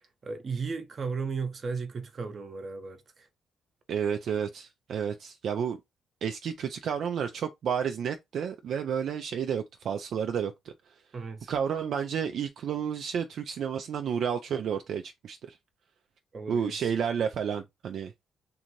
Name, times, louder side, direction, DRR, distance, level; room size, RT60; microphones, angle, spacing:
voice 1, 0.0-3.3 11.1-11.5 16.3-16.9, right 5 dB, 40° right, 0.7 m, -35 dB
voice 2, 3.9-5.8 6.2-11.0 11.5-15.6 16.5-18.1, right 7 dB, 65° right, 0.3 m, -31 dB
2.6 x 2.6 x 2.9 m
cardioid pair, 90°, 0 cm